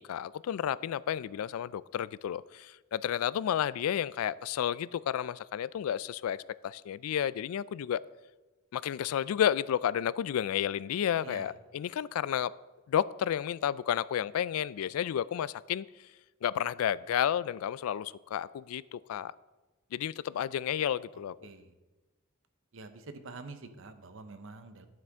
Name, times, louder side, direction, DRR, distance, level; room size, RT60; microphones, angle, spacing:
voice 1, 0.0-6.4 6.6-8.0 8.7-12.5 12.9-15.9 16.4-19.3 19.9-21.4, left 9 dB, 90° left, 20 dB, 0.3 m, -31 dB
voice 2, 11.2-11.5 21.4-21.7 22.7-24.9, right 3 dB, 65° right, 9 dB, 0.9 m, -46 dB
12.0 x 7.5 x 3.6 m, 1.2 s
head